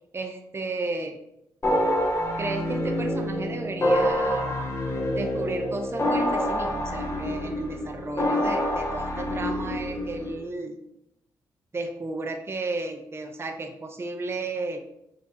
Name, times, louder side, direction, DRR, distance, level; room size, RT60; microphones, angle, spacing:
voice 1, 0.1-1.2 2.4-4.6 5.1-10.8 11.7-14.8, right 2 dB, 30° right, 4 dB, 0.6 m, -33 dB
sound 1, 1.6-10.4, equal, 35° left, 1.0 m, -27 dB
4.2 x 3.8 x 2.6 m, 0.80 s
supercardioid pair, 55°, 8 cm